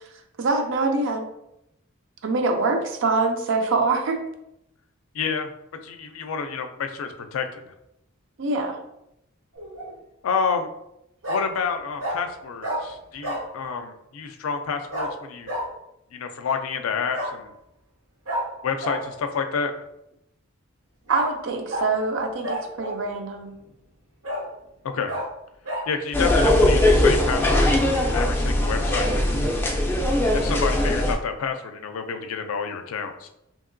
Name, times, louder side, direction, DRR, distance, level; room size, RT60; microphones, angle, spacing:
voice 1, 0.4-1.3 2.2-4.2 8.4-8.8 21.1-23.6, right 3 dB, 65° right, 5 dB, 0.5 m, -24 dB
voice 2, 5.1-5.5 5.8-7.7 10.2-10.7 11.3-15.5 16.1-17.5 18.6-19.8 24.8-25.2 25.9-29.3 30.3-33.3, left 5 dB, 85° left, 7 dB, 0.4 m, -29 dB
Bark, 9.5-9.9 11.2-11.4 12.0-12.2 12.6-12.8 13.2-13.5 14.9-15.1 15.5-15.6 17.1-17.3 18.3-18.4 18.8-19.0 21.1-21.3 21.7-21.9 22.4-23.1 23.6-23.7 24.2-24.4 25.1-25.2 25.6-25.8, right 1 dB, 85° right, 1.1 m, -29 dB
sound 1, 26.1-31.2, left 1 dB, 10° left, 0.3 m, -20 dB
2.8 x 2.8 x 2.5 m, 0.84 s
head